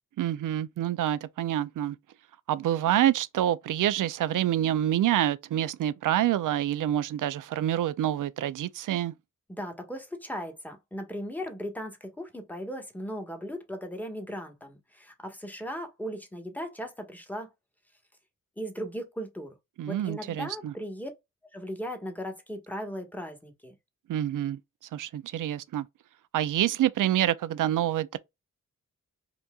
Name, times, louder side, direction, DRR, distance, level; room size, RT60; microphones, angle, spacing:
voice 1, 0.2-2.0 2.5-9.1 19.8-20.7 24.1-24.6 24.9-25.9 26.3-28.2, right 12 dB, 70° right, 0.5 m, -27 dB
voice 2, 9.5-17.5 18.6-19.5 19.8-21.1 21.5-23.7, equal, 5° left, 1.3 m, -37 dB
4.4 x 2.6 x 2.3 m
cardioid pair, 55°, 33 cm